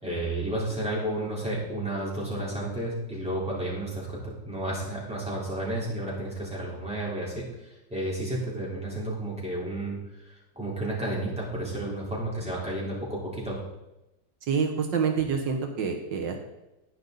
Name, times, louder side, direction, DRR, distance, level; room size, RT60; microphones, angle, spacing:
voice 1, 0.0-10.0 10.3-13.6, right 1 dB, 5° right, -6 dB, 3.7 m, -32 dB
voice 2, 14.5-16.4, right 6 dB, 85° right, 3 dB, 1.9 m, -27 dB
11.0 x 10.0 x 4.0 m, 0.95 s
omnidirectional pair, 1.9 m